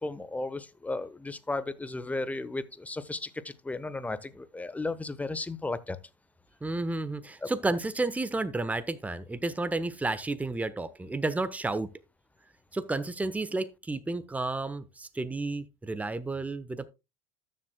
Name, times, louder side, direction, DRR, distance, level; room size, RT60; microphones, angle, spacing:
voice 1, 0.0-6.0 7.4-7.5, left 2 dB, 10° left, 1.1 m, -34 dB
voice 2, 6.6-11.9 12.7-16.9, right 2 dB, 10° right, 1.1 m, -31 dB
13.0 x 7.6 x 2.3 m
hypercardioid pair, 80°, 13 cm